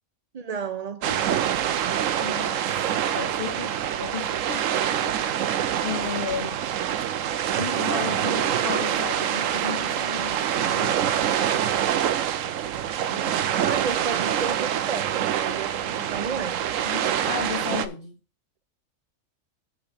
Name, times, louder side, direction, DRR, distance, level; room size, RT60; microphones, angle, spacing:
voice 1, 0.3-1.6 13.1-16.6, right 6 dB, 35° right, 0.7 m, -33 dB
sound 1, 1.0-17.9, right 10 dB, 75° right, 1.0 m, -25 dB
voice 2, 2.2-6.6 7.6-11.3 16.8-18.2, left 7 dB, 45° left, 1.1 m, -35 dB
7.6 x 4.7 x 6.7 m
omnidirectional pair, 1.4 m